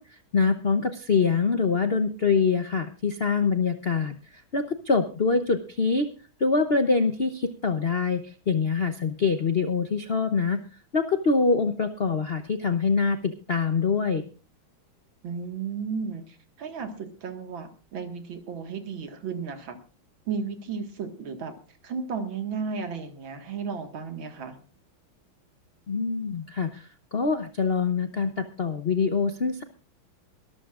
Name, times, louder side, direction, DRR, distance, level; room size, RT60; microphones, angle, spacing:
voice 1, 0.0-6.1 6.4-10.6 10.9-14.2 25.9-29.6, left 4 dB, 50° left, 8 dB, 0.7 m, -25 dB
voice 2, 15.2-19.8 20.3-21.5 21.8-24.6, right 5 dB, 70° right, 6 dB, 2.5 m, -34 dB
22.5 x 13.5 x 2.5 m, 0.35 s
omnidirectional pair, 2.3 m